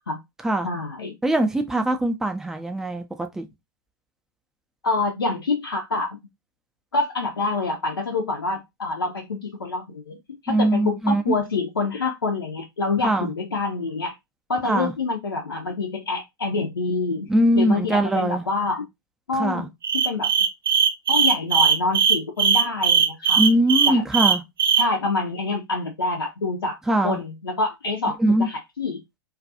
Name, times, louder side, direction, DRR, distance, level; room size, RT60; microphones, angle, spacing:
voice 1, 0.6-1.1 4.8-6.2 6.9-10.2 10.4-14.1 14.5-17.3 17.5-18.8 19.3-19.7 20.0-20.3 21.1-23.4 23.9-24.0 24.8-26.8 27.0-29.0, left 3 dB, 80° left, 0.5 m, -26 dB
voice 2, 1.2-3.5 10.5-11.4 13.0-13.3 14.7-14.9 17.3-18.5 19.4-19.7 23.4-24.4 26.9-27.2 28.2-28.5, right 1 dB, 5° right, 0.4 m, -21 dB
sound 1, 19.8-24.9, right 6 dB, 75° right, 0.4 m, -19 dB
2.3 x 2.2 x 2.6 m
figure-of-eight pair, 95°, 12 cm